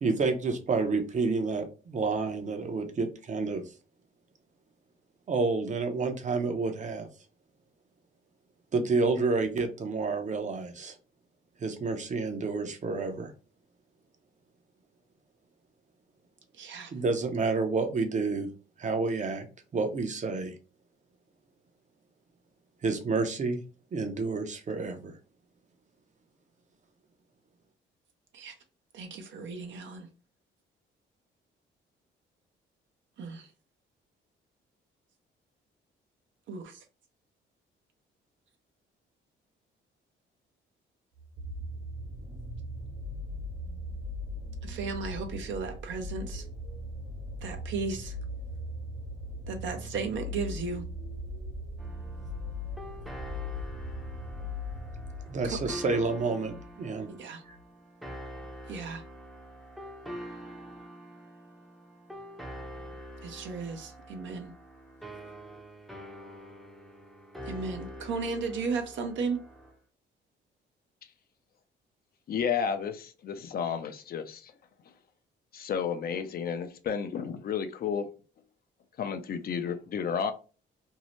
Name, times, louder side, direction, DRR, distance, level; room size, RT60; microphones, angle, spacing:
voice 1, 0.0-3.6 5.3-7.1 8.7-10.9 11.6-13.3 16.9-18.5 18.8-19.5 19.7-20.5 22.8-23.6 23.9-25.1 55.3-57.1 57.5-57.6, right 4 dB, 40° right, 0.6 m, -29 dB
voice 2, 16.6-16.9 28.3-28.5 28.9-30.1 33.2-33.5 36.5-36.8 44.6-46.4 47.4-48.1 49.5-50.8 55.4-55.6 57.1-57.4 58.7-59.0 63.2-64.5 67.5-69.4, right 4 dB, 70° right, 0.7 m, -35 dB
sound 1, 41.2-56.7 57.6-57.7, left 1 dB, 55° right, 1.2 m, -39 dB
sound 2, 51.8-69.7, equal, ahead, 0.6 m, -45 dB
voice 3, 72.3-74.5 75.5-78.1 79.0-80.3, left 7 dB, 50° left, 0.4 m, -32 dB
2.7 x 2.0 x 3.0 m
cardioid pair, 90°, 20 cm